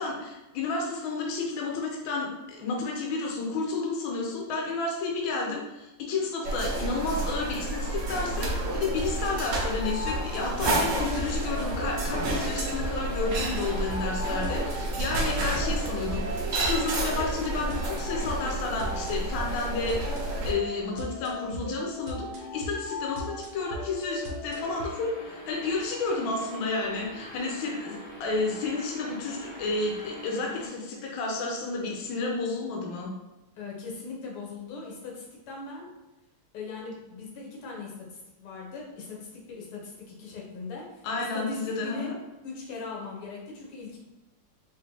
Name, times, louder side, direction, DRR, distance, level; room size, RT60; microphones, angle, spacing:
voice 1, 0.0-20.0 20.4-33.1 41.0-42.1, left 3 dB, 70° left, -1 dB, 1.4 m, -31 dB
sound 1, 6.4-20.5, right 2 dB, 80° right, 0.7 m, -30 dB
sound 2, 8.0-24.9, left 1 dB, 65° right, 1.1 m, -38 dB
sound 3, 24.5-30.7, left 1 dB, 45° left, 0.7 m, -44 dB
voice 2, 33.6-35.9 36.5-42.1 42.4-44.0, left 4 dB, 90° left, -2 dB, 1.9 m, -40 dB
4.3 x 3.0 x 2.7 m, 1.1 s
omnidirectional pair, 2.4 m